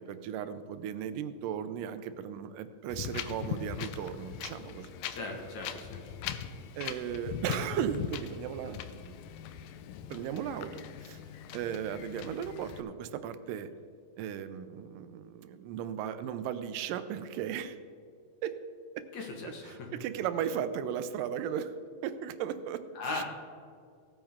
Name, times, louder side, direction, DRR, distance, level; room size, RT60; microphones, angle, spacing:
voice 1, 0.0-4.9 6.8-9.1 10.1-11.2 11.5-13.7 14.2-17.8 18.4-18.5 19.0-19.1 19.5-21.7 22.0-23.2, right 9 dB, 85° right, 11 dB, 2.2 m, -36 dB
Wind, 2.9-12.8, left 8 dB, 85° left, 2.3 m, -40 dB
voice 2, 5.1-6.1 19.1-19.9 23.0-23.2, left 3 dB, 60° left, 1 dB, 2.6 m, -38 dB
17.5 x 8.7 x 3.6 m, 2.3 s
omnidirectional pair, 3.8 m